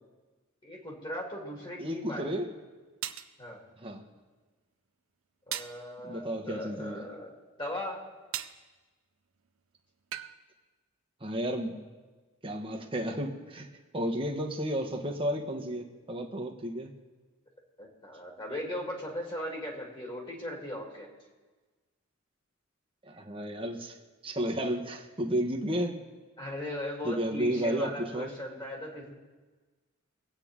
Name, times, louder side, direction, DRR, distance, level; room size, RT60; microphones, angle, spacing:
voice 1, 0.6-2.3 3.4-3.6 5.5-7.3 7.6-8.0 17.8-21.1 26.4-29.2, left 1 dB, 25° left, -2 dB, 2.9 m, -38 dB
voice 2, 1.8-2.5 3.8-4.0 6.0-7.0 11.2-11.8 12.4-13.7 13.9-16.9 23.0-24.0 24.2-26.0 27.0-28.3, equal, 25° right, 2 dB, 1.4 m, -32 dB
sound 1, 3.0-3.3 5.5-5.8 8.3-8.6 10.1-10.4, right 12 dB, 70° right, 0.6 m, -37 dB
24.0 x 8.9 x 3.7 m, 1.3 s
head